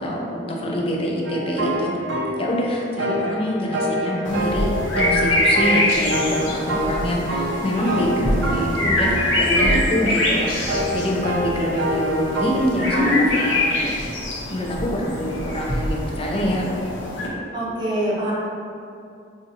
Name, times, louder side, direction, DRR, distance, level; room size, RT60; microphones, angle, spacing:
voice 1, 0.0-1.9 2.4-4.7 5.0-13.9 14.5-16.7, equal, 30° left, -1 dB, 0.4 m, -25 dB
sound 1, 1.2-2.4 3.0-13.2, right 1 dB, 70° right, 0.4 m, -27 dB
sound 2, 4.2-17.3, left 1 dB, 85° left, 0.7 m, -24 dB
voice 2, 12.9-13.3 17.5-18.3, equal, 20° right, -7 dB, 0.7 m, -23 dB
4.2 x 2.5 x 2.6 m, 2.5 s
head